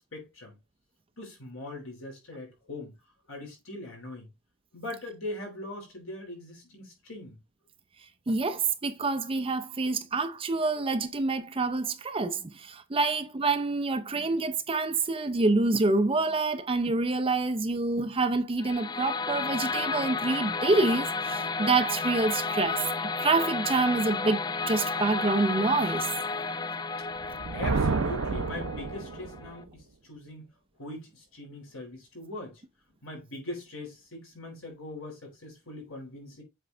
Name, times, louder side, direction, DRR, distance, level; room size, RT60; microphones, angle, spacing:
voice 1, 0.1-0.6 1.2-2.9 3.3-4.3 4.7-7.4 27.5-30.5 30.8-32.6 33.0-36.4, left 1 dB, 65° left, 3.9 m, -41 dB
voice 2, 8.3-22.9 23.2-26.1, right 3 dB, 25° right, 0.6 m, -27 dB
sound 1, 18.6-29.6, left 4 dB, 20° left, 0.4 m, -32 dB
Thunder, 27.2-29.5, right 4 dB, 80° right, 0.7 m, -30 dB
7.8 x 4.5 x 3.3 m
head